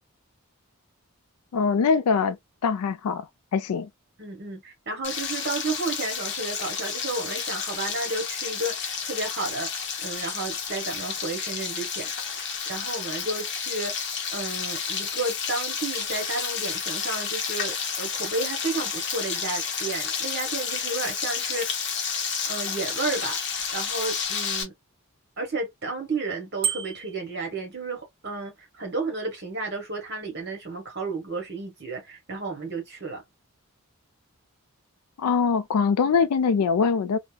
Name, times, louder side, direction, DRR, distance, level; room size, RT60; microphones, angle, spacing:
voice 1, 1.5-2.4 2.6-3.3 3.5-3.9 35.2-37.2, left 5 dB, 90° left, 0.4 m, -22 dB
voice 2, 4.2-9.7 10.0-12.1 12.4-14.0 14.3-21.7 22.5-23.4 23.7-24.7 25.4-33.2, right 3 dB, 50° right, 1.2 m, -32 dB
Frying (food), 5.0-24.6, left 6 dB, 55° left, 0.7 m, -31 dB
Bicycle bell, 26.6-27.2, right 7 dB, 25° right, 0.7 m, -29 dB
2.7 x 2.1 x 2.2 m
head